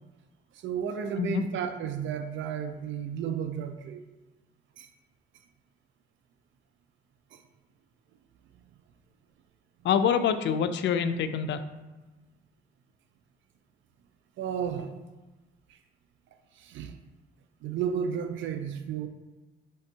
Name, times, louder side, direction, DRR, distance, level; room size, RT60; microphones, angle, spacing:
voice 1, 0.6-4.0 4.8-4.9 14.4-14.9 16.6-16.9 17.6-19.1, right 8 dB, 70° right, 7 dB, 0.4 m, -32 dB
voice 2, 9.8-11.6, left 7 dB, 65° left, 10 dB, 0.4 m, -26 dB
5.2 x 3.4 x 2.7 m, 1.1 s
cardioid pair, 90°, 20 cm